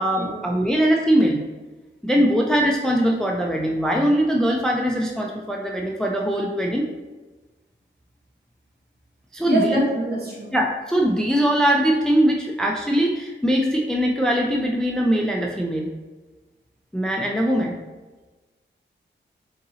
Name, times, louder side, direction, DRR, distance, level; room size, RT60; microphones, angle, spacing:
voice 1, 0.0-1.4 2.0-6.9 9.3-9.8 10.5-15.9 16.9-17.8, equal, 5° left, 0 dB, 0.3 m, -21 dB
voice 2, 9.5-10.5, right 2 dB, 55° right, -4 dB, 1.2 m, -25 dB
4.0 x 3.8 x 2.7 m, 1.2 s
wide cardioid pair, 135°, 20 cm